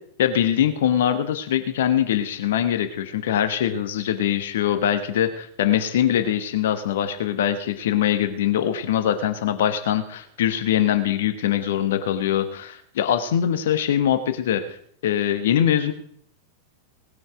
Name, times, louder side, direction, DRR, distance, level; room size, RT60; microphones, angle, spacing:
voice 1, 0.2-14.6 15.0-15.9, left 10 dB, 60° left, 9 dB, 1.3 m, -22 dB
19.0 x 9.3 x 5.0 m, 0.64 s
figure-of-eight pair, 90°, 0 cm